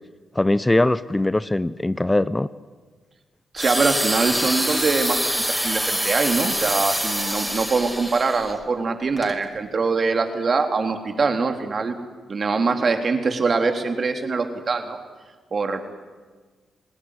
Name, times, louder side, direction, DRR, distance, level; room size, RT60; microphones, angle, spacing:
voice 1, 0.3-2.5, left 1 dB, 15° left, 16 dB, 0.9 m, -21 dB
voice 2, 3.5-12.0 12.3-15.0 15.5-15.8, right 4 dB, 50° right, 5 dB, 3.7 m, -23 dB
sound 1, 3.6-8.5 9.2-9.3, equal, ahead, 5.7 m, -25 dB
29.5 x 19.5 x 9.9 m, 1.4 s
hypercardioid pair, 45°, 0 cm